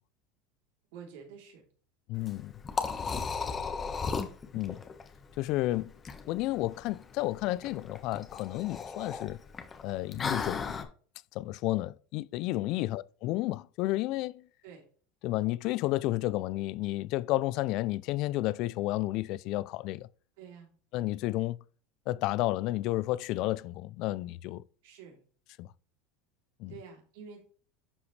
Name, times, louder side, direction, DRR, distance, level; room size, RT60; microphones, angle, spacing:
voice 1, 0.9-1.7 12.8-13.0 14.6-14.8 20.4-20.7 24.8-25.2 26.7-27.4, right 6 dB, 75° right, 3.2 m, -48 dB
voice 2, 2.1-2.5 4.5-4.8 5.4-5.9 6.3-9.4 9.8-10.9 11.3-14.4 15.2-20.1 20.9-21.6 22.1-24.6 25.6-25.7 26.6-26.7, left 17 dB, 55° left, 0.4 m, -31 dB
Liquid, 2.1-10.8, left 5 dB, 25° left, 1.3 m, -36 dB
10.5 x 5.0 x 3.3 m
supercardioid pair, 120°, 0 cm